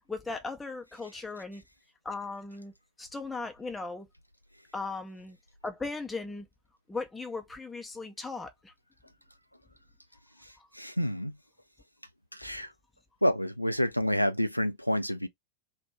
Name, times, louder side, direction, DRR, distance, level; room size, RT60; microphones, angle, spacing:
voice 1, 0.1-1.6 2.0-2.7 3.0-4.1 4.7-5.4 5.6-6.5 6.9-8.7 10.6-10.7, left 3 dB, 10° left, 0.5 m, -37 dB
voice 2, 10.4-11.4 12.3-12.7 13.2-15.3, equal, 90° left, 0.3 m, -29 dB
2.5 x 2.1 x 3.0 m
figure-of-eight pair, 90°, 0 cm